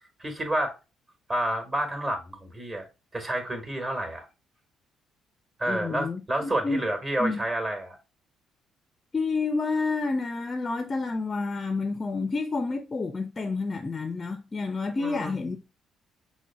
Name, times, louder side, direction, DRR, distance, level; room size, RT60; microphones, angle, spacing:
voice 1, 0.2-0.7 1.3-2.9 3.1-4.3 5.6-8.0 15.0-15.6, right 1 dB, 30° right, 1.4 m, -29 dB
voice 2, 5.7-6.8 7.2-7.4 9.1-15.6, left 3 dB, 30° left, 0.5 m, -29 dB
6.0 x 2.1 x 3.3 m
hypercardioid pair, 45°, 0 cm